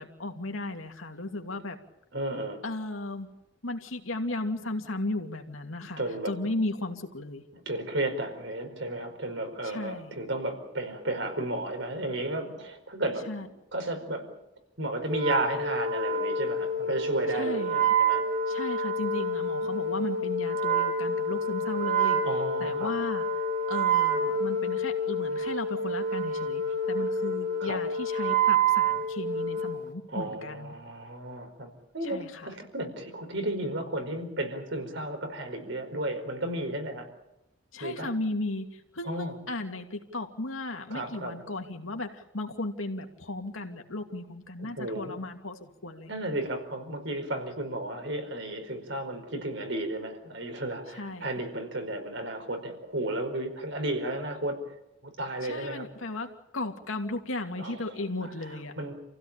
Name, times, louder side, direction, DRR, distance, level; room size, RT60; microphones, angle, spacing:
voice 1, 0.0-1.8 2.6-3.3 3.6-6.0 6.3-7.4 9.6-10.1 13.3-13.5 17.3-17.9 18.5-22.2 22.6-23.3 23.7-26.6 26.9-30.7 32.0-32.5 37.7-46.1 50.9-51.4 55.4-58.7, left 2 dB, 90° left, 4 dB, 2.7 m, -35 dB
voice 2, 2.1-2.6 6.0-6.3 7.6-14.3 14.8-18.2 22.2-22.9 27.6-27.8 30.1-37.1 37.8-38.1 39.0-39.3 40.9-41.4 44.6-45.1 46.1-54.7 55.0-55.9 57.6-58.5 58.8-58.9, right 1 dB, 70° right, 5 dB, 4.9 m, -33 dB
Wind instrument woodwind instrument, 15.1-29.8, right 2 dB, 40° right, 2.1 m, -28 dB
28.5 x 16.0 x 8.9 m, 0.89 s
head